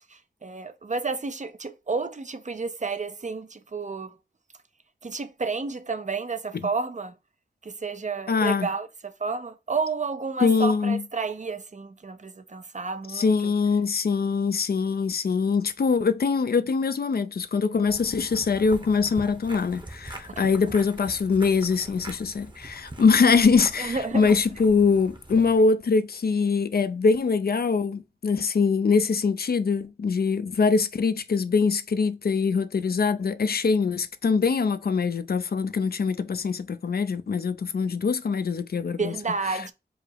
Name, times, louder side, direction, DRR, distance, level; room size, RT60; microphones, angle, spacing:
voice 1, 0.1-4.2 5.0-7.1 7.6-13.5 20.5-20.7 23.8-24.4 39.0-39.7, right 4 dB, 40° right, 0.5 m, -31 dB
voice 2, 8.3-8.7 10.4-11.0 13.1-39.1 39.5-39.7, left 5 dB, 60° left, 0.4 m, -23 dB
sound 1, 17.9-25.6, right 2 dB, 25° right, 0.8 m, -43 dB
4.7 x 2.0 x 4.6 m
wide cardioid pair, 80°, 18 cm